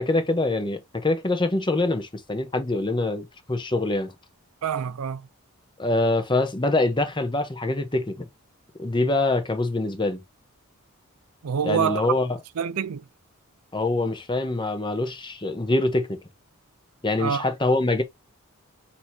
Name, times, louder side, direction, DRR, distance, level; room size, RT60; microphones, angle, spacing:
voice 1, 0.0-4.1 5.8-8.3 8.8-10.2 11.6-12.3 13.7-16.2 17.0-18.0, left 2 dB, 20° left, 0.9 m, -24 dB
voice 2, 4.6-5.3 11.4-12.0 12.6-13.1 17.2-17.5, right 7 dB, 85° right, 0.5 m, -26 dB
6.3 x 2.9 x 2.7 m
head